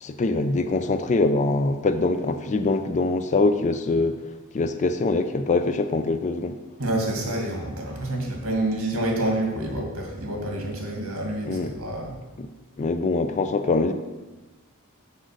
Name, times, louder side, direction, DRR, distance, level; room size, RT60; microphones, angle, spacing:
voice 1, 0.0-4.2 4.5-6.6 11.5-11.8 12.4-12.5 12.8-13.9, left 3 dB, 35° left, 10 dB, 0.4 m, -23 dB
voice 2, 6.8-12.1, right 1 dB, 65° right, 1 dB, 2.0 m, -28 dB
6.3 x 5.1 x 6.5 m, 1.2 s
head